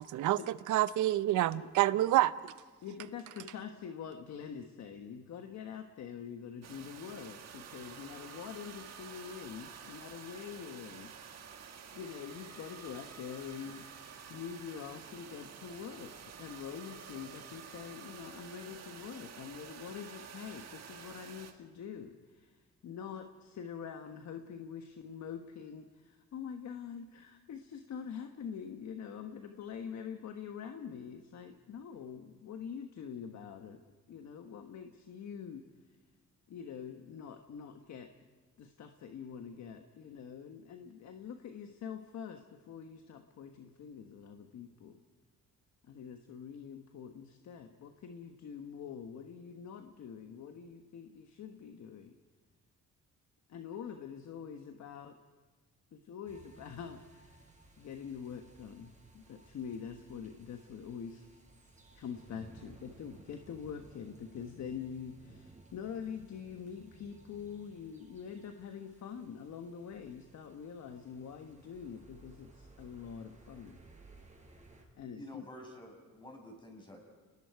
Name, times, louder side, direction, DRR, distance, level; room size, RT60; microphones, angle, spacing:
voice 1, 0.0-0.4 0.7-2.3, right 15 dB, 80° right, 16 dB, 0.7 m, -27 dB
voice 2, 2.8-11.1 11.9-13.9 14.3-33.8 34.1-35.7 36.5-38.1 38.6-45.0 45.9-52.1 53.5-55.2 55.9-57.4 57.8-61.4 61.9-73.8 74.9-75.4, left 7 dB, 65° left, 5 dB, 1.3 m, -45 dB
sound 1, 6.6-21.5, right 7 dB, 60° right, 1.8 m, -50 dB
sound 2, 56.3-74.9, right 2 dB, 25° right, 5.2 m, -59 dB
voice 3, 75.2-77.0, left 1 dB, 15° left, 2 dB, 6.1 m, -49 dB
29.5 x 19.5 x 4.7 m, 1.3 s
cardioid pair, 90°, 30 cm